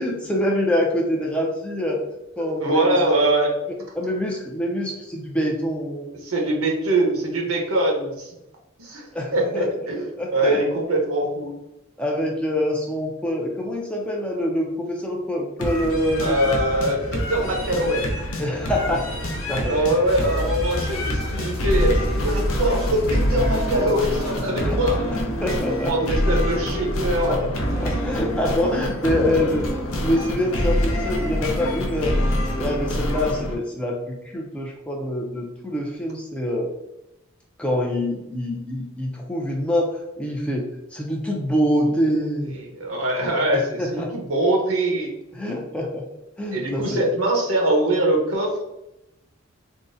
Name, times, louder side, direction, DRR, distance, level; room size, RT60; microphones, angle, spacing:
voice 1, 0.0-2.0 2.4-3.0 3.9-6.1 9.1-9.7 10.0-10.6 12.0-16.4 18.4-19.1 19.5-19.7 20.3-20.4 24.6-24.8 25.1-25.9 26.3-26.4 27.3-27.4 27.8-29.7 30.0-32.2 32.6-36.7 37.6-42.6 43.5-44.1 45.3-46.1 46.4-47.1, equal, 5° left, -1 dB, 0.3 m, -25 dB
voice 2, 2.4-3.5 6.2-8.3 8.8-9.1 9.3-11.5 16.2-18.0 19.7-22.0 22.2-25.0 25.8-27.5 42.1-42.2 42.5-45.1 46.5-48.6, right 1 dB, 85° right, 0 dB, 0.8 m, -23 dB
sound 1, 15.6-33.6, left 1 dB, 80° left, 0.6 m, -26 dB
sound 2, 20.1-24.5, equal, 30° left, 0.9 m, -29 dB
3.6 x 2.0 x 2.6 m, 0.91 s
head